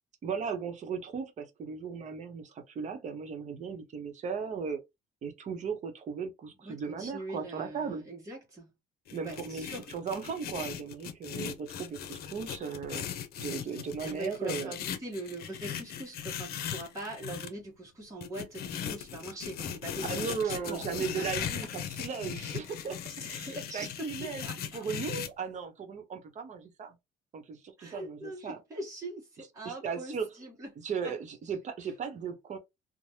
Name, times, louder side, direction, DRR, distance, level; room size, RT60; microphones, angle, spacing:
voice 1, 0.2-4.8 5.2-8.0 9.1-13.1 13.4-14.7 20.1-23.0 23.3-27.0 27.3-28.6 29.6-30.3 30.8-32.6, right 6 dB, 45° right, 0.9 m, -37 dB
voice 2, 6.6-8.7 9.2-9.9 14.1-21.7 22.3-22.6 23.2-24.8 27.8-30.7 31.0-31.1, right 1 dB, 20° right, 1.0 m, -42 dB
sound 1, 9.1-17.5 18.2-25.3, left 9 dB, 65° left, 0.6 m, -38 dB
3.2 x 2.1 x 2.7 m
cardioid pair, 110°, 17 cm